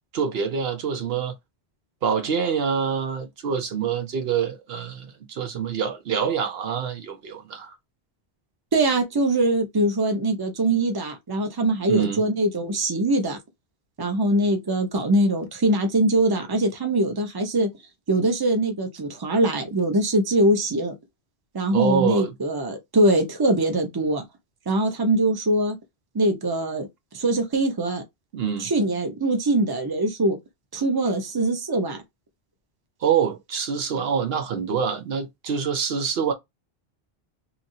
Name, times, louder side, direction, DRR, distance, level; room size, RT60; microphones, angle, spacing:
voice 1, 0.1-1.3 2.0-7.7 11.9-12.2 21.7-22.3 28.3-28.7 33.0-36.3, right 7 dB, 70° right, 0.8 m, -25 dB
voice 2, 8.7-13.4 14.0-17.7 18.1-20.9 21.5-24.2 24.7-25.8 26.1-26.9 27.1-28.0 28.6-30.4 30.7-32.0, right 1 dB, 25° right, 0.7 m, -22 dB
2.9 x 2.6 x 2.6 m
omnidirectional pair, 1.1 m